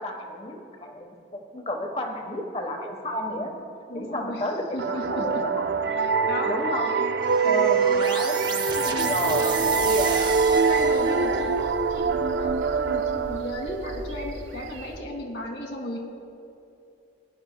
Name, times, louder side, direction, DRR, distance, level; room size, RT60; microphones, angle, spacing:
voice 1, 0.0-3.5 3.9-5.6 6.4-8.5 9.0-9.5 9.8-10.3, left 1 dB, 35° left, 3 dB, 1.1 m, -31 dB
voice 2, 3.9-4.5 4.7-5.4 6.3-6.8 8.7-16.0, left 1 dB, 85° left, -1 dB, 2.1 m, -35 dB
sound 1, 4.8-14.2, right 5 dB, 65° right, 0.4 m, -24 dB
sound 2, 7.2-11.5, right 5 dB, 25° right, 0.6 m, -33 dB
sound 3, 9.5-15.0, right 1 dB, 90° right, 1.1 m, -41 dB
19.5 x 10.5 x 2.3 m, 2.8 s
head